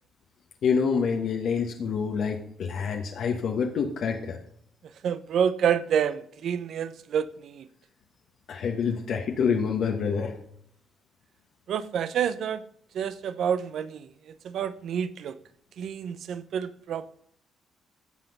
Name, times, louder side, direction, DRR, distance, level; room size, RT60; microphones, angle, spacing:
voice 1, 0.6-4.4 8.5-10.4, left 6 dB, 70° left, 1.2 m, -27 dB
voice 2, 5.0-7.7 11.7-12.6 12.9-14.1 14.4-15.4 15.8-17.1, right 8 dB, 70° right, 0.6 m, -28 dB
15.5 x 5.9 x 5.4 m
cardioid pair, 90°, 0 cm